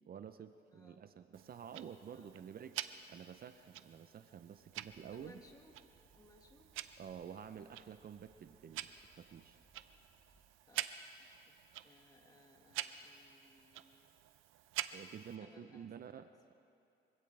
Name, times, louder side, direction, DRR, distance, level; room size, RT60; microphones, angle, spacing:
voice 1, 0.1-5.4 7.0-9.6 14.9-16.5, right 8 dB, 50° right, 10 dB, 0.7 m, -50 dB
voice 2, 0.7-1.1 2.1-2.3 5.1-5.7 6.2-6.7 10.7-10.9 11.2-11.5 11.8-14.1 15.4-16.2, left 2 dB, 20° left, 3 dB, 1.9 m, -63 dB
Tick-tock, 1.3-15.4, right 13 dB, 90° right, 0.6 m, -48 dB
sound 1, 4.6-10.4, right 1 dB, 15° right, 4.1 m, -71 dB
24.5 x 16.5 x 3.4 m, 2.8 s
cardioid pair, 90°, 20 cm